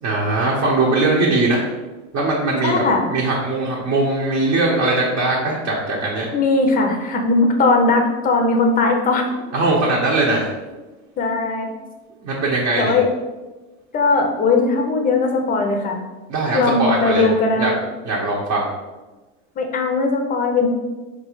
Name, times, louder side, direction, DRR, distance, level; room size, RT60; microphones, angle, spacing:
voice 1, 0.0-1.6 2.1-2.8 3.1-6.2 9.5-10.5 12.2-12.9 16.3-17.2 17.6-17.7 18.0-18.7, right 2 dB, 40° right, -4 dB, 0.8 m, -20 dB
voice 2, 2.6-3.1 6.3-9.3 11.2-11.7 12.8-13.1 13.9-16.0 16.5-17.8 19.6-20.7, left 3 dB, 25° left, 3 dB, 0.6 m, -19 dB
4.5 x 2.4 x 3.0 m, 1.2 s
hypercardioid pair, 105°, 38 cm